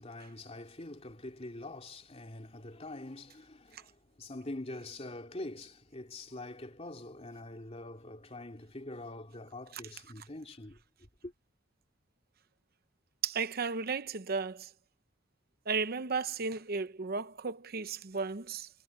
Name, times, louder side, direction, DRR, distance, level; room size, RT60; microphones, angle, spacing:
voice 1, 0.0-10.8 11.2-11.3, left 2 dB, 30° left, 2.8 m, -44 dB
voice 2, 13.2-14.7 15.7-18.7, right 4 dB, 50° right, 0.8 m, -34 dB
head